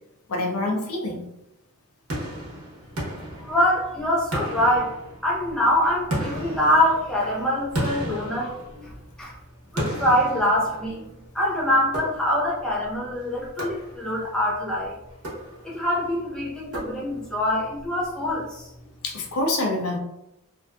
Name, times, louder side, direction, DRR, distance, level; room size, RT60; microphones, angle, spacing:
voice 1, 0.3-1.3 19.0-20.0, left 2 dB, 85° left, 1 dB, 0.6 m, -26 dB
sound 1, 2.1-3.9 4.3-5.5 6.1-9.1 9.8-11.2 11.9-12.6 13.6-14.3 15.1-15.9 16.7-17.4, right 1 dB, 85° right, 0.9 m, -33 dB
voice 2, 3.4-5.0 5.2-9.3 9.7-11.1 11.3-15.0 15.6-18.7, left 1 dB, 5° left, -6 dB, 0.6 m, -24 dB
2.6 x 2.5 x 2.2 m, 0.86 s
head